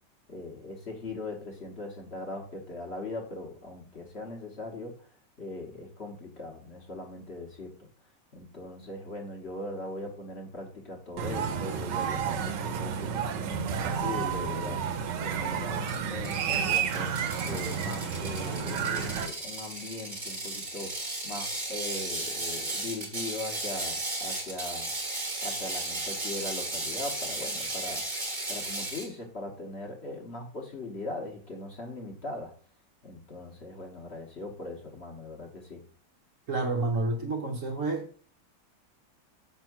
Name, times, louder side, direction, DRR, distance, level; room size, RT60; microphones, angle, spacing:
voice 1, 0.3-5.1 5.4-7.9 8.3-17.1 17.4-24.9 25.4-28.0 28.5-32.5 33.0-35.8, left 2 dB, 40° left, 1.4 m, -40 dB
sound 1, 11.2-19.3, right 7 dB, 80° right, 1.4 m, -31 dB
Ratchet pawl, 15.9-29.1, right 2 dB, 30° right, 1.5 m, -35 dB
voice 2, 36.5-38.1, right 2 dB, 50° right, 1.2 m, -29 dB
6.0 x 3.6 x 5.9 m
omnidirectional pair, 1.9 m